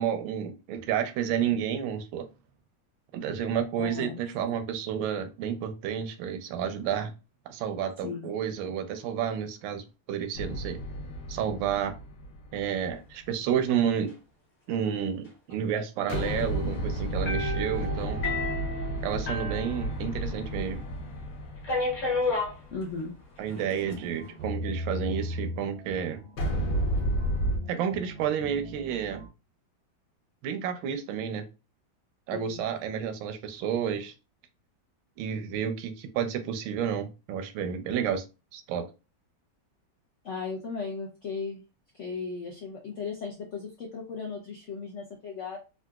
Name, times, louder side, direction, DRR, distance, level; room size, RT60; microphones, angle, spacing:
voice 1, 0.0-2.3 3.1-7.1 7.5-10.8 11.3-12.0 12.5-14.1 14.7-18.2 19.0-20.8 23.4-26.2 27.7-29.2 30.4-31.5 32.3-34.1 35.2-38.2 38.5-38.9, right 8 dB, 85° right, 7 dB, 1.3 m, -30 dB
voice 2, 3.8-4.2 8.0-8.3 22.7-23.1 32.3-32.6 40.2-41.6 41.9-45.6, left 5 dB, 80° left, -1 dB, 0.6 m, -36 dB
sound 1, 10.3-12.9 16.1-23.3 26.4-27.6, right 1 dB, 65° left, 1.3 m, -32 dB
sound 2, 17.3-20.5 20.7-20.8 21.6-22.5 23.5-23.9, left 2 dB, 45° left, 1.4 m, -31 dB
sound 3, 23.5-29.3, equal, 65° right, 0.9 m, -37 dB
3.8 x 2.5 x 2.2 m, 0.29 s
omnidirectional pair, 2.1 m